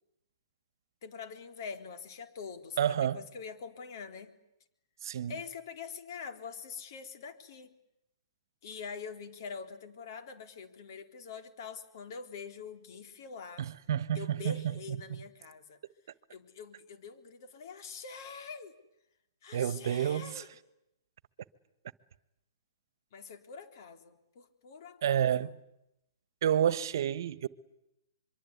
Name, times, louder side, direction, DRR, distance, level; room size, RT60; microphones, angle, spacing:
voice 1, 1.0-4.3 5.3-7.7 8.6-13.7 14.1-15.8 16.3-18.8 19.4-20.5 23.1-25.5, left 5 dB, 55° left, 3.8 m, -44 dB
voice 2, 2.8-3.2 5.0-5.3 13.6-14.6 19.5-20.4 25.0-25.6 26.4-27.5, right 10 dB, 60° right, 1.3 m, -29 dB
24.5 x 24.0 x 9.6 m
hypercardioid pair, 145°, 2 cm